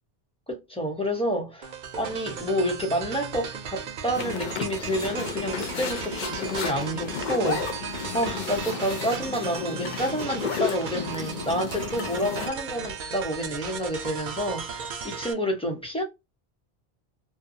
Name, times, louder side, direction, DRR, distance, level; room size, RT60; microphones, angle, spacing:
voice 1, 0.5-1.7 2.0-7.9 8.1-16.0, equal, 5° left, 0.7 m, -29 dB
sound 1, 1.6-15.3, right 6 dB, 60° right, 0.6 m, -36 dB
sound 2, 4.1-12.5, left 7 dB, 55° left, 0.6 m, -33 dB
2.6 x 2.2 x 2.6 m
omnidirectional pair, 1.1 m